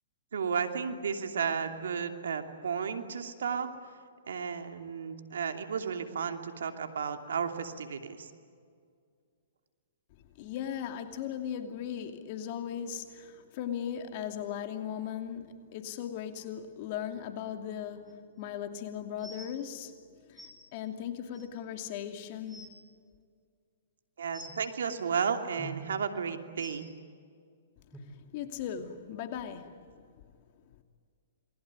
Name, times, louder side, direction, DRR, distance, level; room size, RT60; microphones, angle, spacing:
voice 1, 0.3-3.7 4.3-8.3 24.2-26.9, right 6 dB, 75° right, 6 dB, 2.8 m, -33 dB
voice 2, 10.4-20.0 20.3-22.7 27.9-30.0, left 9 dB, 45° left, 6 dB, 2.7 m, -38 dB
sound 1, 18.1-18.2 19.2-19.5 20.4-20.5 21.3-21.4 22.0-22.1 22.3-22.7 24.3-24.6 25.6-25.8 26.6-26.7 27.9-28.0 28.8-28.9 29.5-29.6, equal, ahead, 5.5 m, -46 dB
28.5 x 21.0 x 9.7 m, 2.1 s
hypercardioid pair, 130°, 0 cm